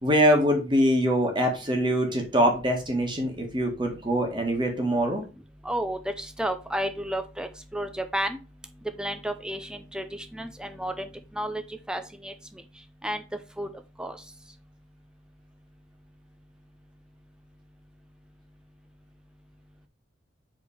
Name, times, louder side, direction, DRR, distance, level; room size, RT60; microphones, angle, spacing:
voice 1, 0.0-5.2, equal, 25° right, 2 dB, 1.8 m, -23 dB
voice 2, 5.6-8.4 9.0-11.1 11.3-11.6 11.9-12.3 13.0-13.2 13.6-13.7 14.0-14.2, right 1 dB, 5° right, 8 dB, 0.6 m, -31 dB
5.0 x 4.4 x 5.0 m, 0.32 s
head